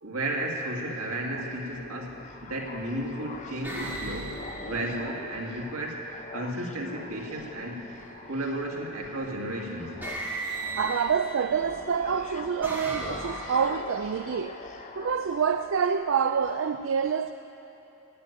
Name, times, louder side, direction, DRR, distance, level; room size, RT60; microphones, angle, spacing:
voice 1, 0.0-7.8 8.3-10.0, right 1 dB, 85° right, 2.4 m, -33 dB
sound 1, 0.6-15.9, left 3 dB, 35° left, 0.7 m, -44 dB
sound 2, 1.4-1.7 2.5-3.0 3.6-5.7 7.9-8.4 9.5-9.6 10.0-11.6 12.2-13.9, right 2 dB, 10° right, 2.3 m, -38 dB
voice 2, 10.8-14.6 15.0-17.3, right 6 dB, 60° right, 0.4 m, -27 dB
16.0 x 9.4 x 9.2 m
head